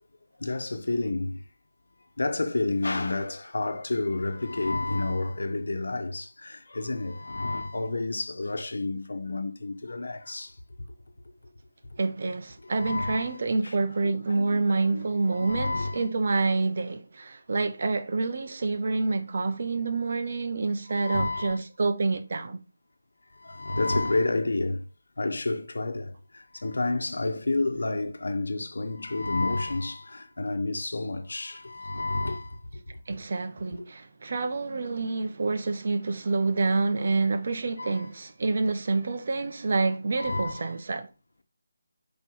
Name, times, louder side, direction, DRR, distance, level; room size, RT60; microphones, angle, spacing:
voice 1, 0.4-1.4 2.2-10.6 12.6-13.4 13.6-13.7 14.0-15.0 15.3-16.1 20.9-21.6 23.3-24.8 25.2-32.6 33.7-33.9 37.8-38.1 40.2-40.7, left 2 dB, 80° left, 1.1 m, -30 dB
voice 2, 12.0-22.6 33.1-41.1, right 3 dB, 45° right, 0.9 m, -27 dB
5.4 x 5.3 x 4.7 m
figure-of-eight pair, 170°, 0 cm